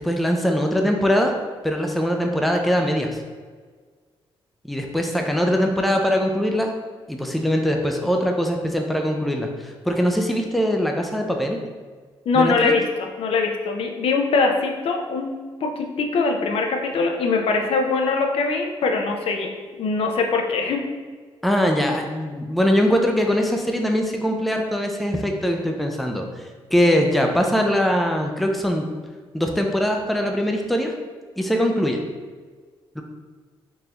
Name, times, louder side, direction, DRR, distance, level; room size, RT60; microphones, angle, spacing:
voice 1, 0.0-1.3 1.6-3.2 4.6-6.7 7.1-11.6 12.3-12.7 21.4-26.4 26.7-28.9 29.3-30.9 31.4-32.0 33.0-33.1, equal, ahead, 2 dB, 0.4 m, -22 dB
voice 2, 12.3-15.3 15.6-19.5 19.8-20.8, left 4 dB, 70° left, 2 dB, 0.5 m, -22 dB
3.8 x 2.5 x 2.9 m, 1.5 s
cardioid pair, 90°, 10 cm